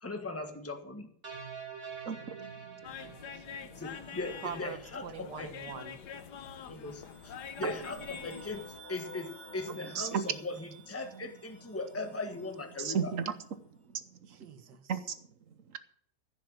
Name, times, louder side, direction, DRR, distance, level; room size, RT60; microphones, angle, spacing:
voice 1, 0.0-1.1 3.7-5.5 6.7-13.1, left 3 dB, 10° left, 1.4 m, -39 dB
sound 1, 1.2-4.6, right 6 dB, 35° right, 2.4 m, -46 dB
voice 2, 2.1-2.7 7.6-7.7 9.7-10.3 12.8-13.3 13.9-14.0 14.9-15.1 15.7-15.8, right 6 dB, 55° right, 1.2 m, -33 dB
sound 2, 2.8-8.8, left 7 dB, 70° left, 1.5 m, -46 dB
sound 3, 3.8-13.5, equal, 35° left, 2.8 m, -53 dB
voice 3, 4.4-6.0 14.3-14.9, right 8 dB, 75° right, 1.8 m, -43 dB
15.0 x 6.8 x 7.6 m
omnidirectional pair, 1.9 m